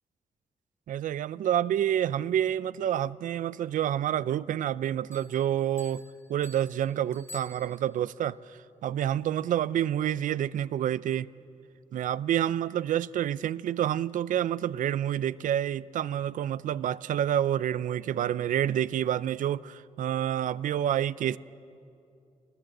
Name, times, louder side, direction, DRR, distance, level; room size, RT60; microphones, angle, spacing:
voice 1, 0.9-6.0 6.3-11.3 11.9-21.4, right 10 dB, 85° right, 0.4 m, -28 dB
sound 1, 5.1-8.1, left 2 dB, 20° left, 1.5 m, -50 dB
22.5 x 19.0 x 7.8 m
wide cardioid pair, 170°, 13 cm